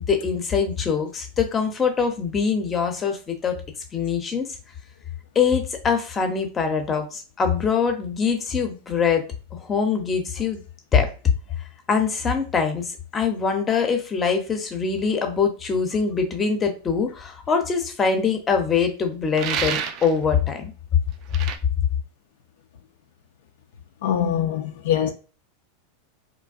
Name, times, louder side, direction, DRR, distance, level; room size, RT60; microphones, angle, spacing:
voice 1, 0.1-3.5 3.9-4.5 5.3-9.2 9.5-10.6 10.9-11.1 11.9-20.7, left 6 dB, 25° left, 0.6 m, -23 dB
sound 1, 19.3-20.2 21.3-21.6, right 8 dB, 50° right, 0.3 m, -28 dB
voice 2, 24.0-25.1, left 9 dB, 70° left, 0.3 m, -23 dB
2.5 x 2.1 x 2.4 m
hypercardioid pair, 105°, 0 cm